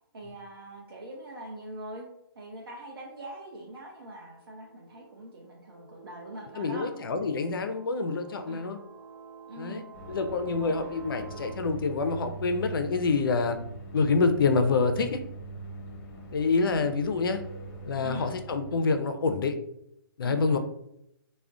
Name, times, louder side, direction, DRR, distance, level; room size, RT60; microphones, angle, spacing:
voice 1, 0.1-2.1 2.4-6.9 8.5-8.7 9.5-9.8 10.6-10.9 16.1-16.2 18.0-18.3 20.2-20.6, right 1 dB, 70° right, -2 dB, 0.6 m, -43 dB
sound 1, 3.2-3.4 4.2-11.6, right 5 dB, 35° right, 1.0 m, -50 dB
voice 2, 6.6-8.8 9.6-13.6 13.9-15.2 16.3-17.4 17.9-19.6 20.2-20.6, left 4 dB, 65° left, 7 dB, 0.4 m, -27 dB
sound 2, 9.9-18.8, right 3 dB, 40° left, 1.0 m, -42 dB
2.3 x 2.1 x 3.5 m, 0.78 s
hypercardioid pair, 140°, 13 cm